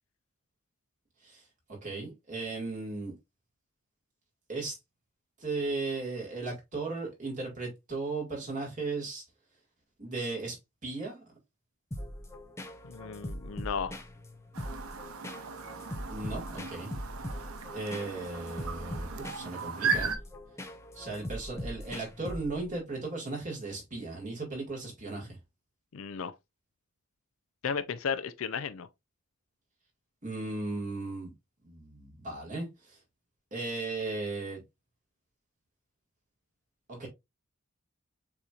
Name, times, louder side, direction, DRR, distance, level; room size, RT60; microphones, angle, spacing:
voice 1, 1.7-3.1 4.5-4.8 5.4-9.2 10.0-10.6 10.8-11.2 16.1-16.9 17.4-17.5 17.7-20.2 21.0-25.4 30.2-31.3 31.6-33.0 33.5-34.6 36.9-37.1, right 3 dB, 35° right, 1.9 m, -36 dB
sound 1, 11.9-22.8, equal, 10° left, 0.5 m, -41 dB
voice 2, 12.8-13.9 25.9-26.3 27.6-28.9, left 6 dB, 65° left, 0.4 m, -34 dB
Chirp tweet, 14.5-20.2, right 5 dB, 75° right, 0.8 m, -36 dB
6.8 x 3.0 x 2.4 m
head